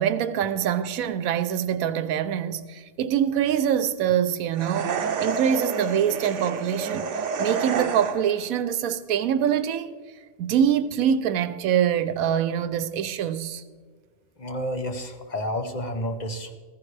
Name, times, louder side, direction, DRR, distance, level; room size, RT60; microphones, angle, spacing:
voice 1, 0.0-7.1 7.4-10.0 10.4-13.6, right 9 dB, 85° right, 1.1 m, -24 dB
sound 1, 4.6-8.4, right 6 dB, 65° right, 1.1 m, -29 dB
voice 2, 14.4-16.5, equal, 35° left, 0.9 m, -30 dB
15.0 x 14.0 x 3.3 m
omnidirectional pair, 1.4 m